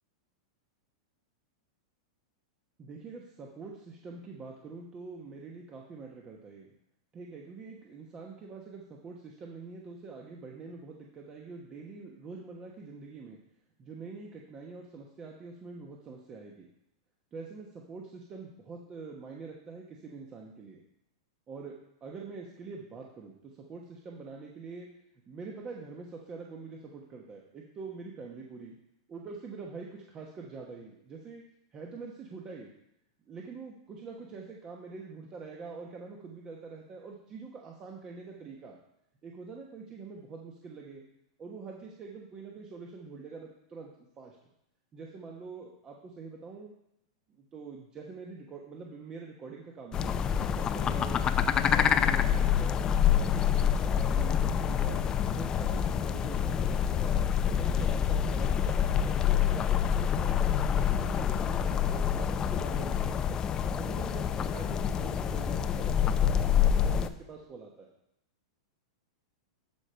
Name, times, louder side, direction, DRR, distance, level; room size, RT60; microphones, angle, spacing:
voice 1, 2.8-6.7 7.1-13.4 13.8-16.7 17.3-20.8 21.5-24.9 25.3-28.7 29.1-31.4 31.7-32.7 33.3-38.8 39.2-41.0 41.4-44.4 44.9-46.7 47.3-52.8 53.1-55.0 55.3-63.3 63.8-67.9, right 4 dB, 25° right, 0 dB, 1.2 m, -45 dB
sound 1, 49.9-67.1, left 8 dB, 25° left, 0.5 m, -27 dB
12.0 x 5.0 x 4.5 m, 0.79 s
hypercardioid pair, 125°, 3 cm